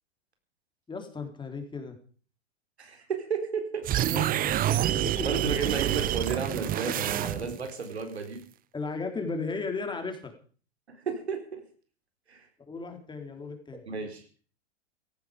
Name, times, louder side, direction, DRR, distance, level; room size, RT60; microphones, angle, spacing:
voice 1, 0.9-2.0 4.1-5.3 8.7-10.3 12.7-13.8, left 4 dB, 15° left, 5 dB, 3.7 m, -35 dB
voice 2, 2.8-4.1 4.8-8.4 10.9-11.6 12.3-12.5 13.9-14.2, right 5 dB, 85° right, 5 dB, 4.3 m, -33 dB
sound 1, 3.8-7.7, right 13 dB, 25° right, 0.8 m, -27 dB
16.5 x 14.5 x 5.2 m, 0.42 s
hypercardioid pair, 100°, 31 cm